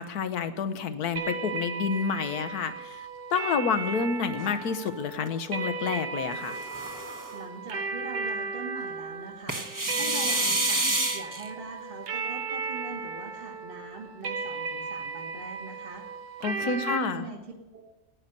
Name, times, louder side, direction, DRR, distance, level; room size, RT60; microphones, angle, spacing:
voice 1, 0.0-6.6 16.4-17.3, left 6 dB, 85° left, 11 dB, 1.5 m, -29 dB
sound 1, 1.2-17.0, right 4 dB, 85° right, 1.7 m, -35 dB
sound 2, 4.4-5.3 6.3-7.4 9.5-11.5, right 2 dB, 15° right, 0.9 m, -29 dB
voice 2, 7.3-16.1 16.6-17.4 17.7-17.8, right 3 dB, 35° right, 0 dB, 1.7 m, -42 dB
17.0 x 10.0 x 6.8 m, 1.0 s
omnidirectional pair, 1.6 m